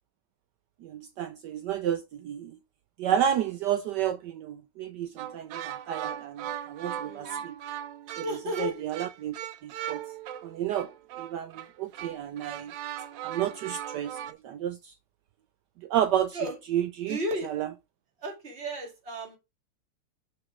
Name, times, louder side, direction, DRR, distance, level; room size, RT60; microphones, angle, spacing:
voice 1, 0.8-2.6 3.0-7.6 8.2-8.3 8.6-9.3 9.6-10.0 10.4-10.9 11.2-12.7 13.2-14.9 15.8-16.4 16.7-17.2 17.4-17.7, right 10 dB, 85° right, 0.9 m, -31 dB
sound 1, 5.2-14.3, right 10 dB, 70° right, 1.2 m, -38 dB
voice 2, 7.0-7.4 8.2-8.8 16.3-16.6 17.1-17.5 18.2-19.4, equal, 30° right, 2.3 m, -34 dB
6.0 x 5.0 x 4.8 m
omnidirectional pair, 2.4 m